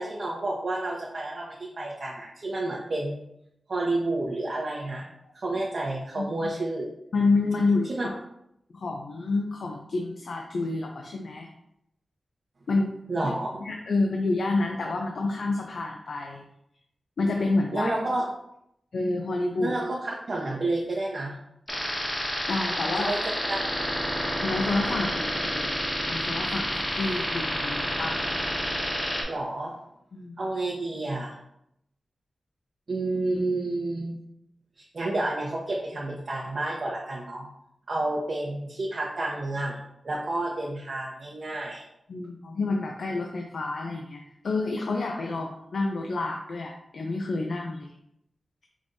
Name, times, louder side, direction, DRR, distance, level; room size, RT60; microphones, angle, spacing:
voice 1, 0.0-3.2 3.7-5.1 5.3-6.9 8.0-8.1 13.1-13.5 17.7-18.2 19.6-21.3 23.0-23.2 23.5-23.6 29.3-29.7 30.4-31.3 32.9-34.2 34.8-37.5 37.9-39.8 40.0-41.8, right 2 dB, 60° right, -4 dB, 0.8 m, -30 dB
voice 2, 7.1-8.2 8.7-11.5 12.7-12.9 13.2-13.3 13.6-16.4 17.2-18.0 18.9-19.7 22.5-23.1 24.4-28.2 30.1-30.3 42.1-47.9, left 3 dB, 75° left, 1 dB, 0.5 m, -28 dB
sound 1, 21.7-29.2, equal, 20° left, 1.3 m, -29 dB
4.9 x 3.3 x 2.6 m, 0.78 s
wide cardioid pair, 70°, 0 cm